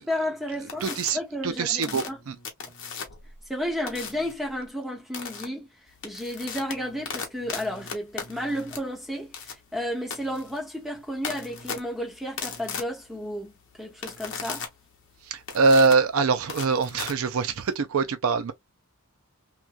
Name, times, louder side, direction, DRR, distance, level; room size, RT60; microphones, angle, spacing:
voice 1, 0.0-2.2 3.5-5.7 6.0-14.7, equal, ahead, 0.9 m, -32 dB
sound 1, 0.7-1.1 1.8-3.3 3.9-4.3 5.1-5.4 5.9-17.8, left 6 dB, 55° left, 0.8 m, -37 dB
voice 2, 0.8-2.3 15.3-18.5, right 4 dB, 65° right, 0.4 m, -23 dB
2.9 x 2.2 x 2.4 m
head